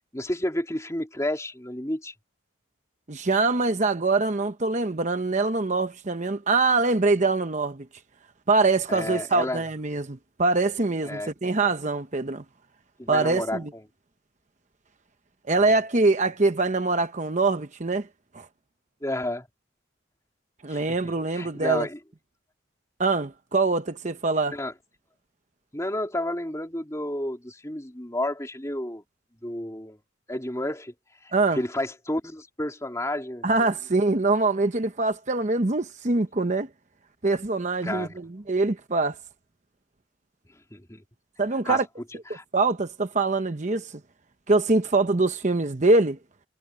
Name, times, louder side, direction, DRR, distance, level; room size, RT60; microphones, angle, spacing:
voice 1, 0.0-2.1 8.9-9.6 11.0-11.3 13.0-13.6 15.6-15.8 19.0-19.5 20.7-22.0 24.5-24.7 25.7-29.0 29.4-30.0 30.3-30.9 31.2-33.7 37.8-38.2 40.7-41.0 41.7-41.8 42.3-42.4, left 1 dB, 15° left, 3.4 m, -31 dB
voice 2, 3.1-7.9 8.5-12.4 13.1-13.7 15.5-18.1 18.3-18.5 20.6-21.9 23.0-24.6 31.3-31.6 33.4-36.7 37.2-39.2 41.4-41.9 42.5-44.0 44.5-46.2, right 3 dB, 40° right, 0.9 m, -24 dB
head